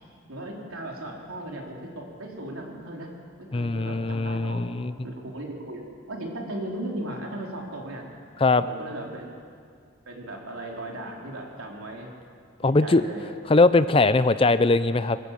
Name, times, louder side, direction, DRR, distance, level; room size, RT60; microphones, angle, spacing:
voice 1, 0.3-3.1 3.4-8.1 8.4-9.3 10.1-12.1 12.6-13.3, right 1 dB, 80° right, 0 dB, 3.6 m, -37 dB
voice 2, 3.5-4.9 8.4-8.6 12.6-13.0 13.5-15.2, left 3 dB, 25° left, 13 dB, 0.4 m, -20 dB
23.0 x 13.5 x 8.4 m, 2.2 s
head